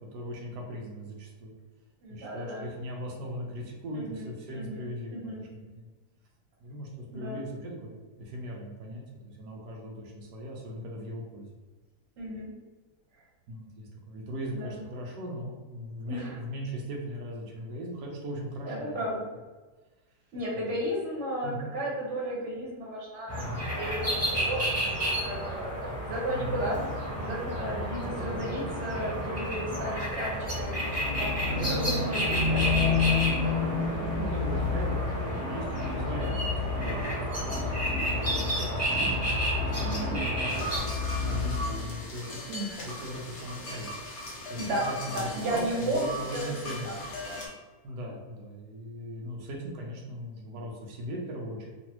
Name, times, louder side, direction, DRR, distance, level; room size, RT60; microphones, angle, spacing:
voice 1, 0.0-1.5 2.1-5.9 6.6-11.5 13.5-19.0 20.5-20.6 21.4-21.7 23.4-23.7 26.3-26.6 28.0-28.5 31.5-32.1 33.2-37.0 37.3-37.8 38.1-40.9 41.3-43.9 44.5-46.9 47.8-51.7, equal, 80° right, -1 dB, 1.2 m, -39 dB
voice 2, 2.0-2.6 3.9-4.8 5.1-5.4 7.1-7.4 12.2-12.5 14.5-14.8 16.1-16.4 18.6-19.2 20.3-23.5 23.8-24.6 24.8-26.8 27.1-33.9 39.8-40.2 44.6-47.4 47.9-48.2, right 1 dB, 50° right, -4 dB, 1.1 m, -34 dB
sound 1, 23.3-40.8, left 1 dB, 10° right, 1.1 m, -30 dB
sound 2, 30.6-42.3, left 4 dB, 75° left, 1.1 m, -34 dB
sound 3, 40.5-47.5, left 1 dB, 50° left, 1.0 m, -39 dB
3.1 x 2.5 x 2.9 m, 1.3 s
omnidirectional pair, 1.8 m